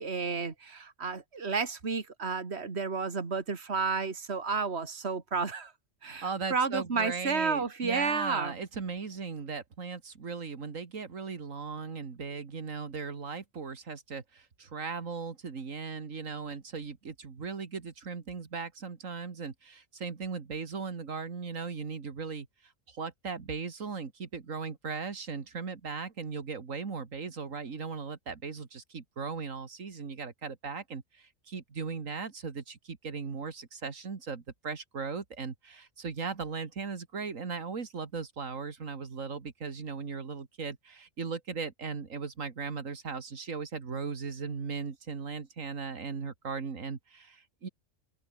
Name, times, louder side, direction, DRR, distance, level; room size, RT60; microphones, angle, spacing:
voice 1, 0.0-5.7 6.0-8.6, right 5 dB, 55° right, 2.5 m, -31 dB
voice 2, 6.2-47.7, right 5 dB, 85° right, 2.4 m, -38 dB
omnidirectional pair, 1.3 m